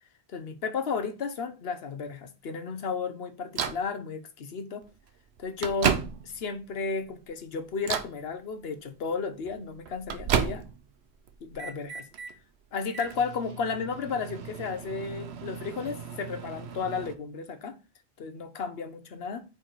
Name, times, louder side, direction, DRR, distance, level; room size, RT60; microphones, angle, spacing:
voice 1, 0.3-4.9 5.4-6.0 6.2-10.6 11.4-12.1 12.7-17.8 18.2-19.4, left 5 dB, 70° left, 1.1 m, -33 dB
Microwave oven, 3.6-3.9 4.8-4.9 5.4-6.5 7.0-7.4 7.8-8.2 9.4-10.9 11.3-12.3 12.9-17.1, right 7 dB, 90° right, 1.0 m, -33 dB
4.7 x 4.7 x 4.4 m
omnidirectional pair, 1.1 m